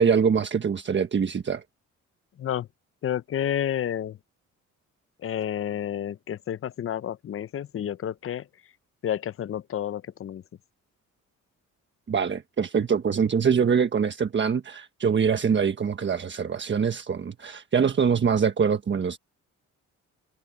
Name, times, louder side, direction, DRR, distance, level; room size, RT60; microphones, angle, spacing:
voice 1, 0.0-1.6 12.1-19.2, right 6 dB, 40° right, 1.4 m, -24 dB
voice 2, 3.0-4.2 5.2-8.5 9.0-10.4, left 10 dB, 45° left, 0.7 m, -30 dB
cardioid pair, 90°, 30 cm